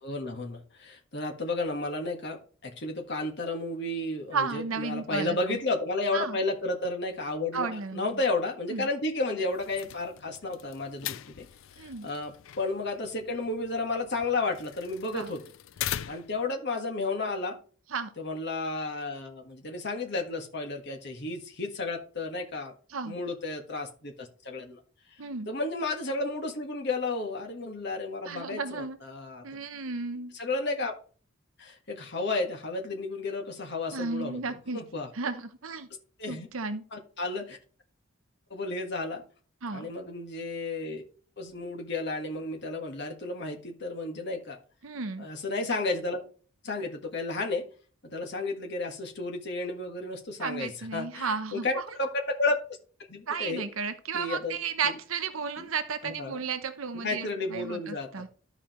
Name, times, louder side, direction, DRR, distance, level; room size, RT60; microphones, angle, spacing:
voice 1, 0.0-11.5 11.8-15.4 16.1-17.6 18.2-22.7 23.0-24.8 25.5-29.4 30.3-30.9 31.6-34.4 34.7-35.1 36.2-36.5 36.9-37.6 38.5-39.2 39.7-41.0 41.4-44.6 45.2-46.2 46.6-47.7 48.0-52.6 53.1-53.7 54.1-54.6 55.6-55.7 56.0-56.4 57.0-58.2, left 2 dB, 55° left, 3 dB, 1.5 m, -32 dB
voice 2, 4.3-5.6 6.1-6.4 7.5-8.2 8.7-8.9 11.8-12.1 15.1-15.3 17.9-18.1 22.9-23.1 25.2-25.5 28.2-29.0 29.4-30.3 33.9-34.8 35.1-35.9 36.3-36.8 39.6-39.9 44.8-45.3 50.4-51.7 53.3-58.3, right 5 dB, 80° right, 9 dB, 0.8 m, -33 dB
sound 1, 9.5-16.5, left 11 dB, 70° left, 0.4 m, -41 dB
13.5 x 4.9 x 3.0 m, 0.41 s
head